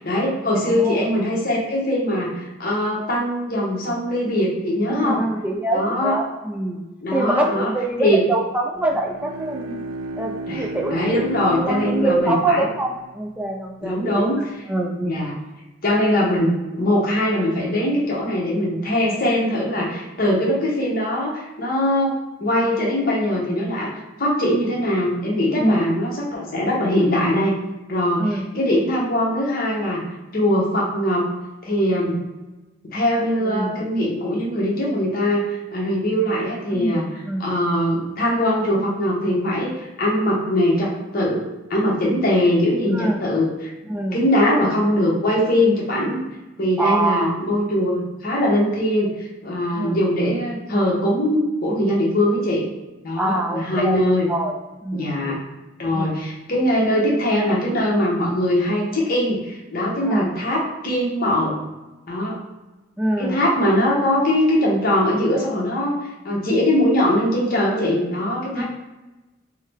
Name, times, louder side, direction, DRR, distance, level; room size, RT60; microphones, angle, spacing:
voice 1, 0.0-5.2 5.7-6.2 7.0-7.7 8.0-8.2 10.5-12.7 13.8-14.4 15.0-15.4 15.8-27.5 27.9-30.0 30.3-31.3 31.6-32.2 32.9-37.1 37.4-43.7 44.1-46.2 46.6-52.7 53.0-54.3 54.9-55.4 55.8-61.6 62.1-62.4 63.2-68.6, left 1 dB, 50° left, -3 dB, 0.9 m, -21 dB
voice 2, 4.9-6.8 7.1-9.8 10.2-14.4 14.7-15.3 25.6-25.9 28.2-28.4 33.4-33.8 36.7-37.5 42.9-43.2 43.9-44.2 46.8-47.4 49.7-50.0 53.2-54.0 54.3-55.4 55.9-56.2 60.0-60.3 63.0-63.4 68.5-68.6, right 2 dB, 5° right, 1 dB, 0.3 m, -24 dB
Bowed string instrument, 8.7-13.5, right 2 dB, 80° right, 0.3 m, -32 dB
3.7 x 2.1 x 3.3 m, 1.1 s
head